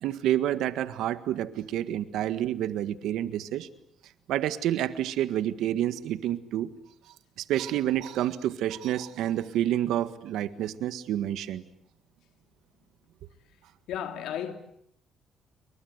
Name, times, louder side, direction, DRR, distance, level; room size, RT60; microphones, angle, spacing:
voice 1, 0.0-3.7 4.3-6.7 7.5-11.6, right 12 dB, 85° right, 1.7 m, -28 dB
voice 2, 13.9-14.5, left 9 dB, 85° left, 3.3 m, -33 dB
29.5 x 23.5 x 8.1 m
cardioid pair, 90°, 0 cm